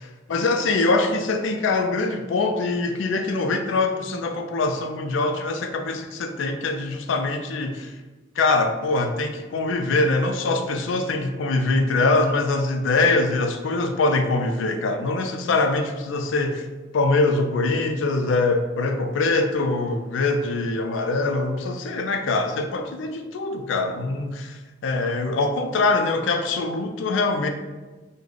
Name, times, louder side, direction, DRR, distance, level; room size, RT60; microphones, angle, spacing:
voice 1, 0.3-7.9 8.4-16.7 16.9-27.5, left 3 dB, 70° left, 6 dB, 0.4 m, -23 dB
3.6 x 2.1 x 3.3 m, 1.2 s
head